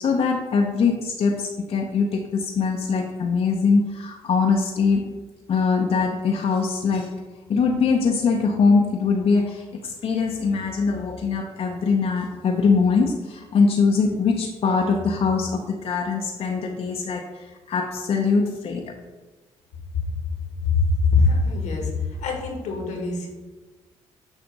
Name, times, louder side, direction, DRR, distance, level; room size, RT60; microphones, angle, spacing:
voice 1, 0.0-5.0 5.5-7.1 7.5-18.9, left 4 dB, 55° left, 2 dB, 0.6 m, -22 dB
voice 2, 20.8-21.9 22.2-23.3, left 3 dB, 85° left, 1 dB, 1.4 m, -22 dB
7.1 x 2.5 x 5.3 m, 1.2 s
cardioid pair, 75°, 12 cm